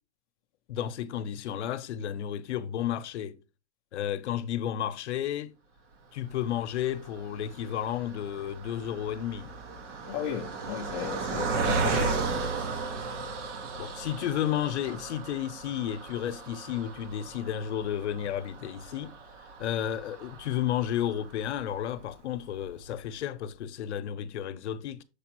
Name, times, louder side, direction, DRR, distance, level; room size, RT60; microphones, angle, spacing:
voice 1, 0.7-3.4 3.9-5.5 6.1-9.5 11.3-11.6 13.8-19.1 19.6-25.0, left 10 dB, 70° left, 0.8 m, -32 dB
Car passing by, 6.4-21.8 22.4-22.5 22.7-22.9, right 4 dB, 80° right, 1.7 m, -35 dB
voice 2, 10.1-12.2 14.9-15.0, left 10 dB, 30° left, 0.4 m, -36 dB
6.7 x 5.0 x 3.0 m
hypercardioid pair, 155°, 36 cm